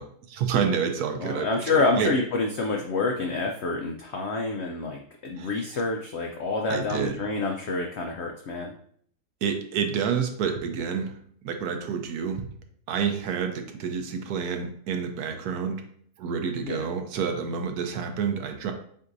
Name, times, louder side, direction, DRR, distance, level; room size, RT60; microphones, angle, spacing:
voice 1, 0.0-1.6 2.0-2.1 5.4-5.5 6.7-7.1 9.4-11.1 11.4-12.5 12.9-15.8 16.2-18.7, right 6 dB, 75° right, 6 dB, 1.1 m, -28 dB
voice 2, 1.2-8.7 16.6-16.9, left 3 dB, 75° left, 1 dB, 0.6 m, -28 dB
7.5 x 2.6 x 2.6 m, 0.62 s
omnidirectional pair, 1.7 m